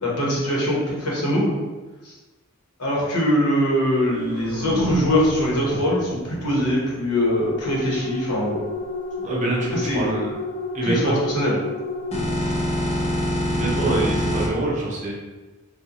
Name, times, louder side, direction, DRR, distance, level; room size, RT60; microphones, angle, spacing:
voice 1, 0.0-1.5 2.0-2.1 2.8-8.6 9.7-10.1 10.8-11.6, equal, 90° left, -4 dB, 1.1 m, -22 dB
sound 1, 3.7-7.7, right 3 dB, 70° right, 0.3 m, -32 dB
sound 2, 7.3-14.5, left 1 dB, 30° left, 0.5 m, -27 dB
voice 2, 9.2-10.3 10.7-11.1 13.4-15.1, right 2 dB, 35° right, -4 dB, 0.7 m, -25 dB
3.8 x 2.3 x 2.9 m, 1.2 s
head